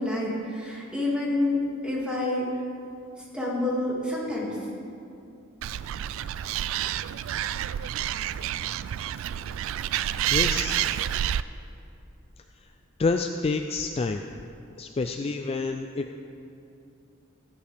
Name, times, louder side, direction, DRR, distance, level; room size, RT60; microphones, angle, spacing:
voice 1, 0.0-2.5 3.3-4.6, left 2 dB, 5° right, -5 dB, 2.3 m, -28 dB
Animal, 5.6-11.4, right 11 dB, 65° right, 0.3 m, -29 dB
voice 2, 10.3-11.0 13.0-14.2 14.8-16.2, left 3 dB, 30° left, 5 dB, 0.3 m, -28 dB
15.0 x 11.5 x 3.5 m, 2.6 s
head